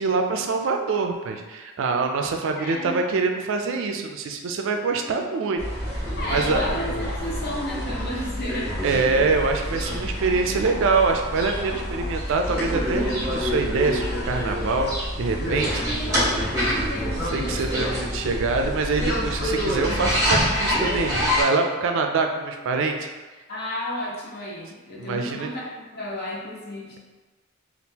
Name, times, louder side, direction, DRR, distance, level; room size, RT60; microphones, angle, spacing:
voice 1, 0.0-5.6 5.9-6.6 8.8-14.9 15.2-15.8 17.3-23.0 25.0-25.5, right 4 dB, 65° right, 4 dB, 0.4 m, -25 dB
voice 2, 2.6-3.0 6.2-8.8 15.8-17.8 23.5-25.7 25.9-27.0, equal, 50° left, -4 dB, 0.8 m, -32 dB
sound 1, 5.6-21.4, equal, 15° right, 1.4 m, -27 dB
3.5 x 2.4 x 2.8 m, 1.3 s
head